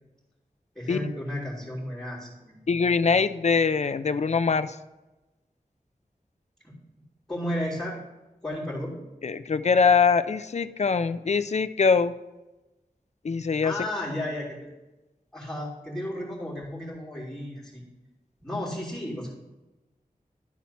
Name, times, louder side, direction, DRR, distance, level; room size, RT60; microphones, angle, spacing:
voice 1, 0.7-3.2 6.6-6.7 7.3-8.0 8.4-9.0 13.6-14.5 15.3-17.8 18.4-19.3, left 1 dB, 5° left, -7 dB, 2.8 m, -33 dB
voice 2, 2.7-4.8 9.2-12.1 13.2-13.7, left 5 dB, 50° left, 13 dB, 0.4 m, -23 dB
11.5 x 4.2 x 5.7 m, 1.1 s
wide cardioid pair, 70°, 15 cm